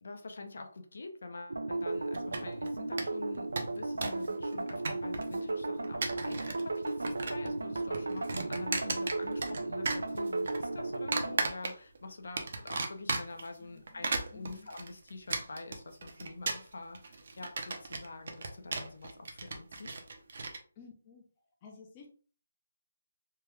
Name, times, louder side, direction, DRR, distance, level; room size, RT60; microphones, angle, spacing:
voice 1, 0.0-20.0, left 2 dB, 60° left, 5 dB, 0.6 m, -46 dB
sound 1, 1.5-11.4, right 2 dB, 90° right, 0.4 m, -35 dB
sound 2, 2.1-2.7 3.0-3.1 3.3-4.3 4.5-5.4 5.8-6.6 6.9-7.5 7.7-9.6 9.8-10.6 11.1-12.0 12.4-13.5 13.9-20.6, right 3 dB, 45° right, 0.6 m, -35 dB
voice 2, 13.6-14.1 14.3-14.7 20.8-21.2 21.6-22.1, left 5 dB, 20° left, -1 dB, 0.5 m, -53 dB
3.3 x 2.2 x 3.3 m, 0.41 s
hypercardioid pair, 175°, 0 cm